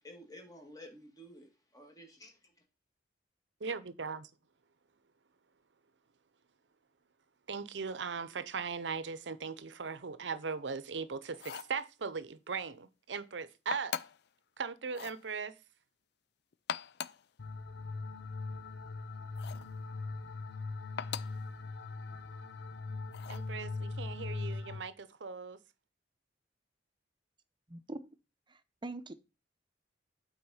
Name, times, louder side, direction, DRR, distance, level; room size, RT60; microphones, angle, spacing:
voice 1, 0.0-2.5, equal, 20° left, 2.2 m, -52 dB
voice 2, 3.6-4.3 7.5-14.0 14.6-15.5 23.3-25.6, right 5 dB, 75° right, 0.7 m, -39 dB
sound 1, 11.3-11.8 13.7-14.3 14.9-15.2 16.5-17.3 19.4-19.7 21.0-21.4 23.1-23.5, left 8 dB, 65° left, 0.5 m, -41 dB
sound 2, 17.4-24.8, left 3 dB, 80° left, 0.9 m, -40 dB
voice 3, 27.7-28.1 28.5-29.1, right 2 dB, 25° right, 0.7 m, -43 dB
8.7 x 4.3 x 5.6 m
head